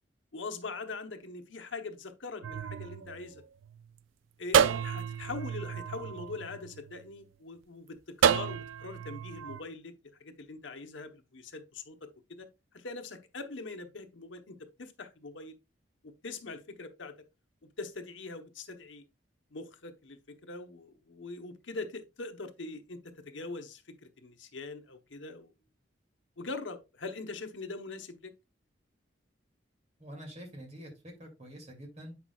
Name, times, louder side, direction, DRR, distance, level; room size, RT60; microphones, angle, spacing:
voice 1, 0.3-3.4 4.4-9.9 10.2-12.5 12.7-15.5 16.0-17.1 17.8-19.0 19.5-25.5 26.4-28.3, left 3 dB, 80° left, 1.1 m, -42 dB
sound 1, 2.4-3.9 4.5-7.1 8.2-9.6, right 8 dB, 90° right, 0.3 m, -30 dB
voice 2, 30.0-32.2, equal, 35° right, 2.6 m, -46 dB
8.4 x 5.8 x 2.4 m
head